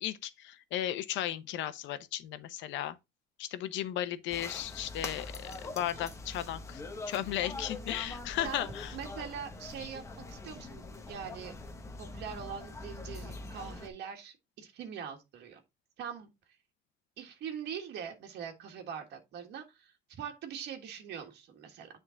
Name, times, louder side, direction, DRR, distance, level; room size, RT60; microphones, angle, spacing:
voice 1, 0.0-3.0 3.4-6.8 7.1-8.9, left 12 dB, 80° left, 0.9 m, -35 dB
sound 1, 4.3-13.9, left 2 dB, 15° left, 0.9 m, -43 dB
voice 2, 8.9-11.5 12.0-15.6 16.0-16.3 17.2-21.9, right 7 dB, 60° right, 1.7 m, -42 dB
9.9 x 3.8 x 3.8 m
cardioid pair, 175°, 19 cm